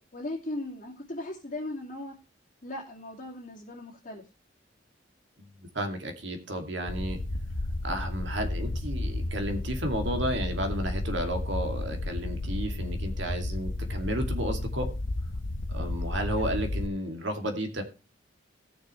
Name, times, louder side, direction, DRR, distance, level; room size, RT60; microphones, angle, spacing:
voice 1, 0.1-2.2 2.6-4.2, left 1 dB, 40° left, -5 dB, 2.5 m, -37 dB
voice 2, 5.4-7.2 7.8-14.9 15.7-17.8, equal, 70° right, 6 dB, 2.3 m, -32 dB
sound 1, 6.9-16.9, left 2 dB, 80° left, 1.1 m, -32 dB
18.5 x 6.5 x 3.2 m, 0.31 s
head